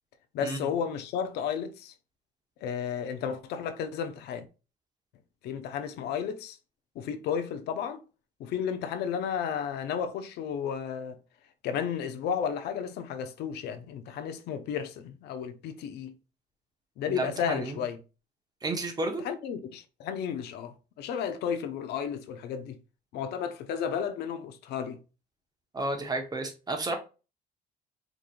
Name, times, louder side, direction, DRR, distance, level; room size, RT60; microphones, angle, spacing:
voice 1, 0.3-1.9 2.6-4.5 5.4-6.6 7.0-8.0 8.4-11.2 11.6-16.1 17.0-18.0 19.2-22.8 23.1-25.0, left 7 dB, 80° left, 0.6 m, -33 dB
voice 2, 17.1-17.8 18.6-19.2 25.7-27.0, right 2 dB, 25° right, 1.1 m, -32 dB
5.1 x 3.1 x 2.4 m
cardioid pair, 110°, 17 cm